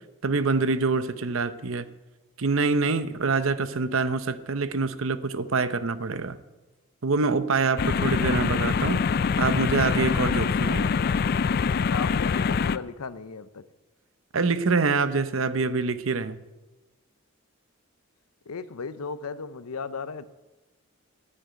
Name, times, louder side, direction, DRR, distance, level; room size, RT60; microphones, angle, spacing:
voice 1, 0.2-1.9 2.4-6.4 7.0-9.0 9.4-10.9 14.3-16.4, right 4 dB, 65° right, 0.7 m, -25 dB
sound 1, 7.8-12.8, left 5 dB, 45° left, 0.3 m, -24 dB
voice 2, 11.8-13.6 18.5-20.2, left 5 dB, 90° left, 0.7 m, -36 dB
10.0 x 9.9 x 9.2 m
head